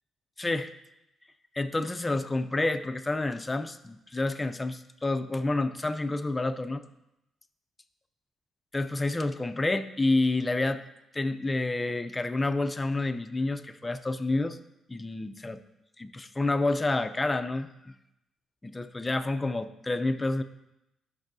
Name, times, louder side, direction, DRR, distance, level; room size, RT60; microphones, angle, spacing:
voice 1, 0.4-0.7 1.6-6.8 8.7-10.8 11.1-14.6 14.9-15.6 16.0-17.9 18.6-20.4, left 2 dB, 20° left, 10 dB, 0.5 m, -29 dB
11.5 x 6.2 x 2.7 m, 0.88 s
cardioid pair, 90°, 0 cm